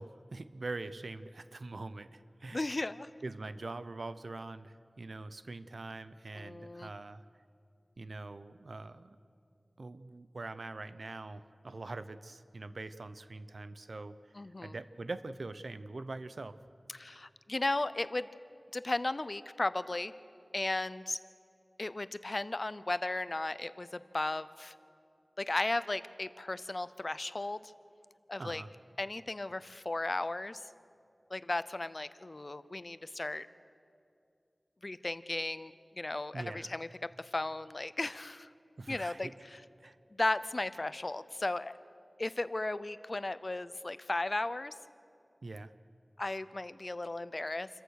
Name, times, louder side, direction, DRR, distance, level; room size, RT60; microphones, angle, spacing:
voice 1, 0.0-2.7 3.2-7.2 8.0-9.2 9.8-14.2 14.6-16.6 28.4-28.7 36.3-36.7 38.8-39.3 39.8-40.0 45.4-45.7, right 2 dB, 80° right, 13 dB, 0.7 m, -43 dB
voice 2, 2.5-3.1 6.4-6.9 14.3-14.7 16.9-18.3 18.7-20.1 20.5-21.2 21.8-24.7 25.4-27.7 28.3-28.6 29.0-30.6 31.3-33.5 34.8-38.5 38.9-39.6 40.1-41.8 42.2-44.8 46.2-47.7, left 2 dB, 50° left, 15 dB, 0.6 m, -35 dB
27.5 x 14.5 x 6.5 m, 2.5 s
wide cardioid pair, 45°, 0 cm